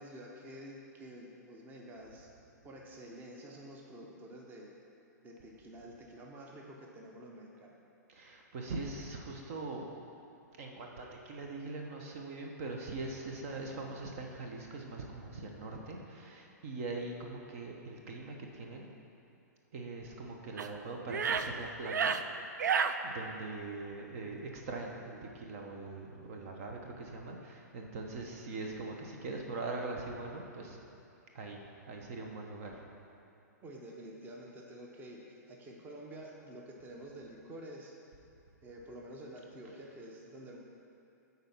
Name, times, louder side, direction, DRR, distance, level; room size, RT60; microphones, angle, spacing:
voice 1, 0.0-2.4 2.6-4.7 5.2-7.7 33.6-37.9 38.6-40.6, right 1 dB, 20° right, -1 dB, 0.9 m, -49 dB
voice 2, 8.1-9.9 10.6-18.9 19.7-22.5 23.0-30.8 31.3-32.8, right 3 dB, 50° right, 1 dB, 1.0 m, -42 dB
sound 1, 20.6-20.7 21.1-21.5 21.8-22.2 22.6-22.9, right 6 dB, 80° right, 0.4 m, -30 dB
8.9 x 4.1 x 5.6 m, 2.7 s
hypercardioid pair, 120°, 10 cm